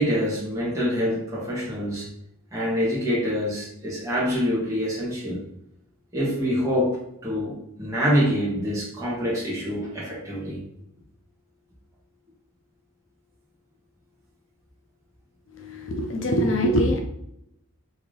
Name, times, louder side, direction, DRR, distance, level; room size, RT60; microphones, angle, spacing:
voice 1, 0.0-2.1 2.5-5.4 6.1-10.6, equal, 15° right, -7 dB, 1.0 m, -26 dB
voice 2, 15.5-17.0, equal, 60° left, 2 dB, 0.5 m, -23 dB
3.2 x 2.8 x 3.8 m, 0.78 s
head